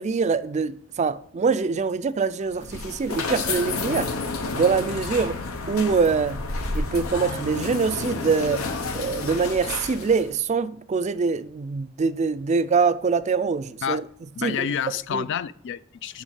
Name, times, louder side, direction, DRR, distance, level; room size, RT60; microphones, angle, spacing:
voice 1, 0.0-4.1 4.5-5.4 5.7-6.4 6.7-8.7 8.9-14.0 14.4-14.6 15.1-15.3, right 5 dB, 35° right, 0.4 m, -24 dB
sound 1, 2.5-10.3, left 3 dB, 90° left, 1.0 m, -30 dB
voice 2, 14.3-16.2, left 8 dB, 60° left, 0.4 m, -29 dB
10.5 x 3.6 x 6.4 m
head